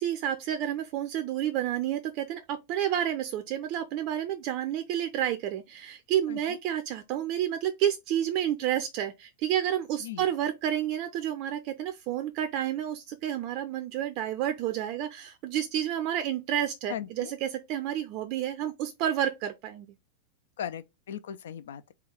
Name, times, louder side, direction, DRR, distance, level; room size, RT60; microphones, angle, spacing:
voice 1, 0.0-19.9, right 11 dB, 40° right, 0.4 m, -30 dB
voice 2, 6.3-6.6 10.0-10.3 16.9-17.3 20.6-21.9, left 10 dB, 60° left, 0.3 m, -38 dB
3.7 x 2.3 x 4.3 m
figure-of-eight pair, 90°, 0 cm